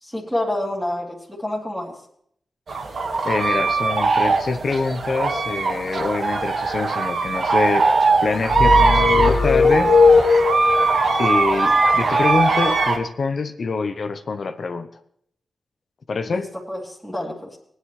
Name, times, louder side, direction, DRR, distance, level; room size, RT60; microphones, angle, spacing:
voice 1, 0.0-2.0 16.3-17.6, left 1 dB, ahead, -4 dB, 2.5 m, -28 dB
sound 1, 2.7-13.0, right 3 dB, 65° right, 1.6 m, -20 dB
voice 2, 3.2-7.9 8.2-10.0 11.2-14.9 16.1-16.5, left 4 dB, 60° left, 8 dB, 0.9 m, -25 dB
sound 2, 8.5-10.9, left 4 dB, 90° left, 1.9 m, -16 dB
19.5 x 9.6 x 3.2 m, 0.69 s
wide cardioid pair, 90°, 0 cm